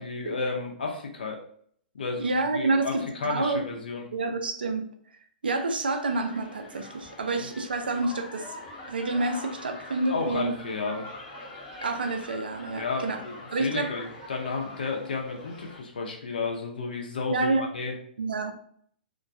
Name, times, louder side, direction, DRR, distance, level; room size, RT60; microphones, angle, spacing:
voice 1, 0.0-1.4 1.9-4.0 7.4-7.5 10.1-11.1 12.8-17.9, left 4 dB, 70° left, 1 dB, 0.7 m, -32 dB
voice 2, 2.2-3.6 4.1-4.9 5.4-8.5 8.9-10.5 11.8-13.2 13.5-13.9 17.3-17.6 18.2-18.5, right 3 dB, 80° right, 6 dB, 0.4 m, -28 dB
sound 1, 6.0-15.8, left 2 dB, 25° left, 0.8 m, -44 dB
2.2 x 2.2 x 2.6 m, 0.62 s
figure-of-eight pair, 120°, 5 cm